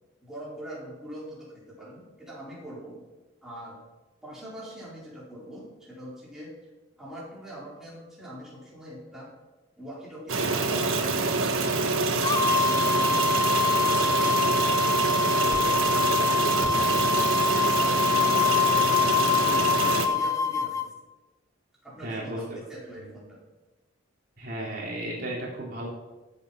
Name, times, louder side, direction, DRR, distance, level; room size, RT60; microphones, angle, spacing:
voice 1, 0.2-3.0 3.4-3.8 4.2-6.5 7.0-9.3 9.8-13.3 13.6-17.2 17.6-20.9 21.8-23.4, right 1 dB, ahead, -7 dB, 4.5 m, -42 dB
sound 1, 10.3-20.1, right 3 dB, 85° right, 1.4 m, -26 dB
sound 2, 12.2-20.9, left 5 dB, 15° left, 0.4 m, -24 dB
voice 2, 16.4-16.8 22.0-22.6 23.0-23.1 24.4-25.9, right 1 dB, 45° right, -4 dB, 2.8 m, -34 dB
13.5 x 8.2 x 5.9 m, 1.1 s
head